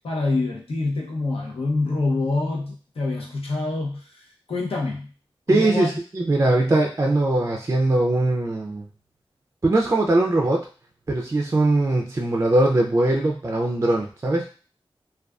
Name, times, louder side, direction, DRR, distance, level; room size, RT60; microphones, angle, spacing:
voice 1, 0.0-4.2 4.5-5.1 5.5-5.9, left 3 dB, 80° left, -1 dB, 0.7 m, -26 dB
voice 2, 5.5-8.9 9.6-10.7 11.1-14.5, right 2 dB, 30° right, 1 dB, 0.3 m, -21 dB
2.4 x 2.3 x 2.3 m, 0.38 s
wide cardioid pair, 65°, 10 cm